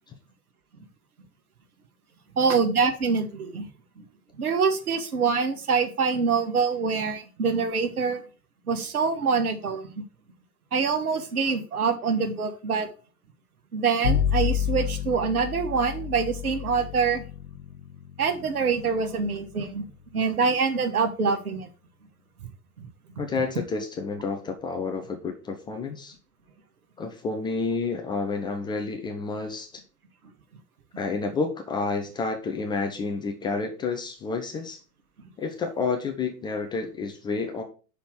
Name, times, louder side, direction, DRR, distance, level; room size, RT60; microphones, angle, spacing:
voice 1, 2.3-3.6 4.0-4.1 4.4-8.2 8.7-9.9 10.7-12.9 13.7-17.2 18.2-19.9 20.1-21.7 22.8-22.9, right 5 dB, 70° right, 7 dB, 1.5 m, -25 dB
Bowed string instrument, 14.0-20.5, left 8 dB, 60° left, 2.7 m, -31 dB
voice 2, 23.2-26.1 27.0-29.8 31.0-34.8 35.4-37.6, left 4 dB, 10° left, 4 dB, 0.5 m, -30 dB
5.8 x 5.0 x 6.3 m, 0.37 s
figure-of-eight pair, 95°, 46 cm